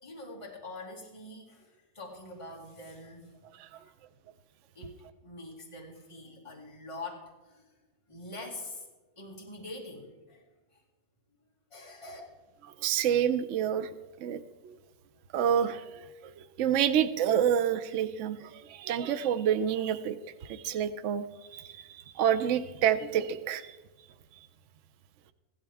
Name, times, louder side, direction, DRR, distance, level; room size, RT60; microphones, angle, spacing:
voice 1, 0.0-3.3 3.7-3.9 4.7-5.0 5.2-7.7 8.1-8.9 9.2-10.4 10.7-10.8 11.7-12.2, left 2 dB, 20° left, -2 dB, 2.2 m, -44 dB
voice 2, 12.8-13.9 14.2-14.8 15.3-15.8 16.6-20.2 20.4-21.2 21.5-21.6 22.2-23.6, right 9 dB, 65° right, 9 dB, 0.9 m, -27 dB
15.5 x 12.5 x 3.5 m, 1.2 s
omnidirectional pair, 1.6 m